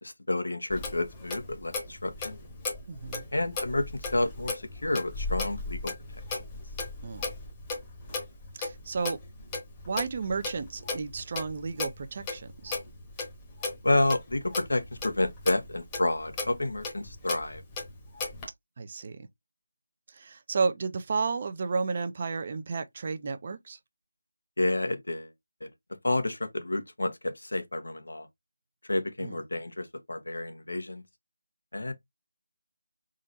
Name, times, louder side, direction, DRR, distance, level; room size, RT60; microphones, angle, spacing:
voice 1, 0.0-2.4 3.3-5.9 6.3-6.4 13.8-17.6 24.6-25.3 25.6-25.7 26.0-28.3 28.9-31.0 31.7-31.9, left 2 dB, 90° left, 1.4 m, -30 dB
Clock, 0.7-18.5, left 3 dB, 10° left, 1.0 m, -37 dB
voice 2, 2.9-3.3 7.0-7.2 8.6-9.2 9.9-12.8 18.8-19.2 20.1-23.8 29.2-29.4, right 4 dB, 30° right, 0.6 m, -32 dB
4.3 x 3.8 x 2.6 m
figure-of-eight pair, 170°, 0 cm